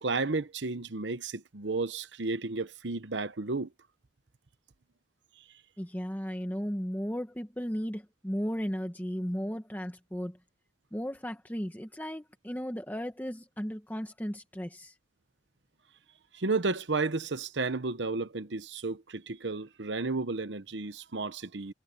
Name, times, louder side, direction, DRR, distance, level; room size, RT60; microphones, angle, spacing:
voice 1, 0.0-3.7 16.3-21.7, right 3 dB, 75° right, 1.0 m, -32 dB
voice 2, 5.8-10.4 10.9-14.9, equal, 10° left, 1.5 m, -35 dB
head